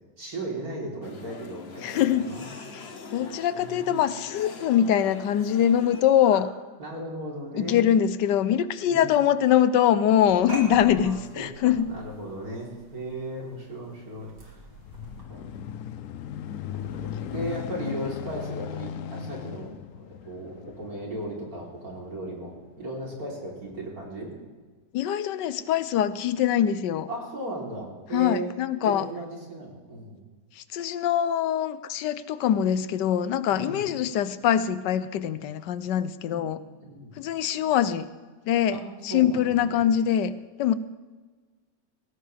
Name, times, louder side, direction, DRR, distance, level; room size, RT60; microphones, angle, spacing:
voice 1, 0.2-2.5 3.5-3.9 6.3-6.4 6.8-7.9 8.9-9.1 10.6-14.6 15.3-15.6 16.7-24.3 27.1-28.5 28.8-30.2 33.5-33.8 36.2-36.5 36.8-37.2 38.7-38.8 39.1-39.8, right 1 dB, 55° right, -3 dB, 4.1 m, -36 dB
sound 1, 1.0-6.0, left 4 dB, 45° left, 1.1 m, -43 dB
voice 2, 1.8-2.3 2.7-2.8 3.1-6.5 7.5-11.9 24.9-27.1 28.1-29.1 30.6-36.6 37.2-38.1 38.5-40.3 40.6-40.7, left 10 dB, 85° left, 14 dB, 1.3 m, -23 dB
sound 2, 10.1-15.2, right 1 dB, 75° right, 3.2 m, -43 dB
sound 3, 14.3-23.1 23.7-23.8, left 9 dB, 65° left, 0.8 m, -38 dB
19.5 x 16.5 x 3.4 m, 1.3 s
omnidirectional pair, 1.8 m